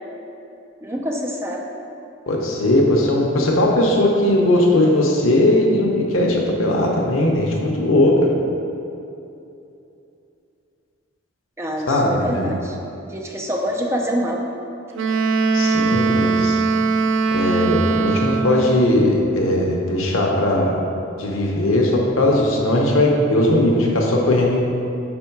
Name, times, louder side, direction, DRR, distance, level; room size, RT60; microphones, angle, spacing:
voice 1, 0.8-1.6 11.6-12.8 13.1-14.4, equal, 15° right, 0 dB, 0.5 m, -25 dB
voice 2, 2.3-8.1 11.9-12.5 15.5-16.6 17.3-20.8 21.2-24.6, left 1 dB, 90° left, -1 dB, 0.8 m, -18 dB
Wind instrument woodwind instrument, 14.9-18.9, right 4 dB, 65° right, 0.4 m, -20 dB
4.5 x 4.4 x 5.8 m, 2.7 s
head